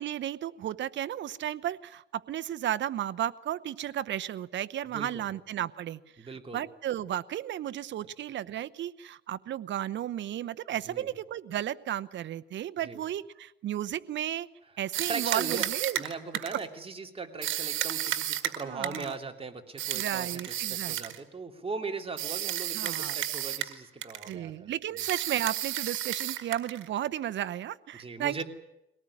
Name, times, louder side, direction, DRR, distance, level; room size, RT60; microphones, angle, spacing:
voice 1, 0.0-14.5 14.8-16.0 16.3-16.4 18.6-19.1 19.9-21.0 22.7-23.2 24.3-28.4, right 11 dB, 65° right, 15 dB, 0.9 m, -34 dB
voice 2, 4.9-5.3 6.2-6.6 10.9-11.1 12.8-13.0 15.1-15.7 16.0-25.0 27.9-28.4, right 4 dB, 30° right, 5 dB, 2.9 m, -39 dB
sound 1, 14.9-16.7 17.4-19.1 19.8-21.2 22.2-23.8 24.0-24.3 25.0-26.9, right 13 dB, 85° right, 1.8 m, -32 dB
23.0 x 18.5 x 9.9 m, 0.87 s
cardioid pair, 90°, 20 cm